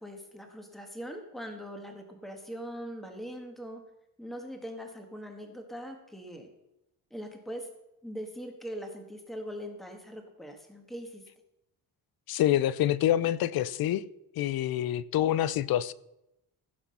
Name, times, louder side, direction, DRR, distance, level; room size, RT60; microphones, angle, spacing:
voice 1, 0.0-3.8 4.2-6.5 7.1-7.7 8.0-11.2, equal, ahead, 1.6 m, -41 dB
voice 2, 12.3-14.0 14.4-15.9, left 12 dB, 60° left, 0.6 m, -26 dB
16.0 x 5.9 x 5.5 m
cardioid pair, 130°, 42 cm